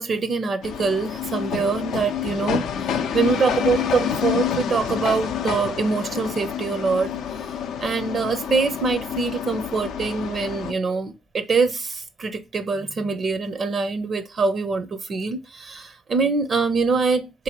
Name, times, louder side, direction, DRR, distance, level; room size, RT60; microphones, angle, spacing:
voice 1, 0.0-7.1 7.4-7.5 7.8-17.4, right 4 dB, 45° right, 0.5 m, -24 dB
sound 1, 0.6-10.7, left 8 dB, 85° left, 0.5 m, -28 dB
3.7 x 2.6 x 2.8 m
cardioid pair, 90°, 0 cm